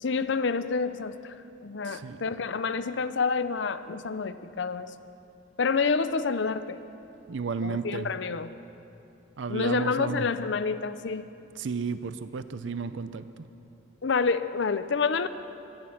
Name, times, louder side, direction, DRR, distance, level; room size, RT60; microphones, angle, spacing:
voice 1, 0.0-1.3 1.6-4.9 5.6-6.8 7.6-8.5 9.5-11.3 14.0-15.3, left 5 dB, 65° left, 12 dB, 0.6 m, -28 dB
voice 2, 1.8-2.2 7.3-8.1 9.4-10.3 11.6-13.2, right 5 dB, 65° right, 12 dB, 0.5 m, -33 dB
24.0 x 9.7 x 5.8 m, 2.7 s
head